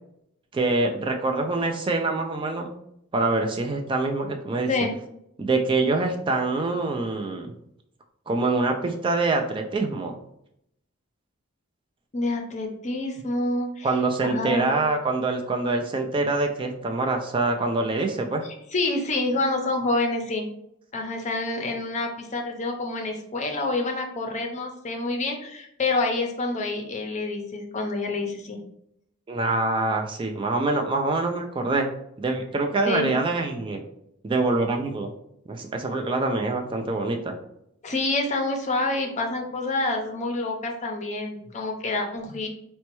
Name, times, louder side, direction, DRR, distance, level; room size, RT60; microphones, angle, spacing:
voice 1, 0.5-2.8 3.1-4.7 5.4-7.5 8.3-10.2 13.8-18.4 29.3-31.9 32.2-33.8 34.2-35.1 35.5-37.4, right 3 dB, 25° right, 3 dB, 0.3 m, -25 dB
voice 2, 12.1-13.9 14.2-14.7 18.7-20.5 20.9-28.6 32.8-33.2 37.8-42.5, left 2 dB, 35° left, 2 dB, 0.6 m, -27 dB
4.1 x 2.2 x 3.0 m, 0.75 s
head